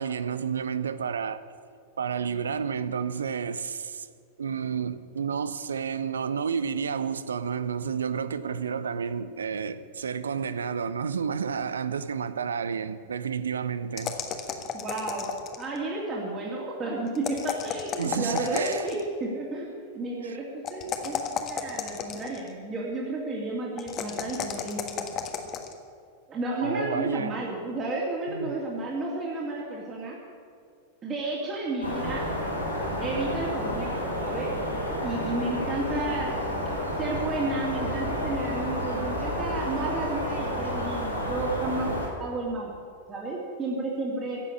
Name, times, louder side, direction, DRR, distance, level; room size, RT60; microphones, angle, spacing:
voice 1, 0.0-1.4 2.0-4.1 4.4-14.2 18.0-18.9 20.2-20.4 26.6-27.4 28.3-28.5, right 6 dB, 70° right, 0.7 m, -30 dB
sound 1, 14.0-15.8 17.2-19.1 20.6-22.5 23.8-25.7, left 7 dB, 30° left, 1.5 m, -33 dB
voice 2, 14.7-15.3 15.6-25.1 26.3-30.2 31.0-32.3 33.0-34.5 35.0-36.3 37.0-42.7 43.1-44.4, right 2 dB, 25° right, 2.8 m, -32 dB
sound 2, 31.8-42.1, equal, 85° left, 4.0 m, -30 dB
15.5 x 7.5 x 9.5 m
figure-of-eight pair, 90°, 0 cm